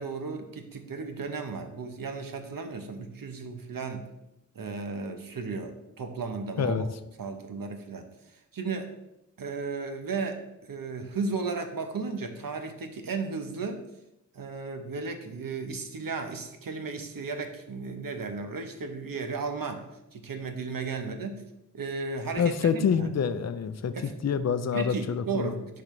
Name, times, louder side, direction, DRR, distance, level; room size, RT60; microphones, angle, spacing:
voice 1, 0.0-4.1 4.5-6.9 7.2-8.1 8.5-8.9 9.4-13.8 14.3-19.8 20.1-21.4 21.7-23.1 23.9-24.1 24.7-25.8, right 4 dB, 85° right, 6 dB, 0.8 m, -34 dB
voice 2, 22.4-25.5, left 6 dB, 50° left, 11 dB, 0.5 m, -27 dB
10.0 x 3.9 x 3.1 m, 0.88 s
wide cardioid pair, 65°, 33 cm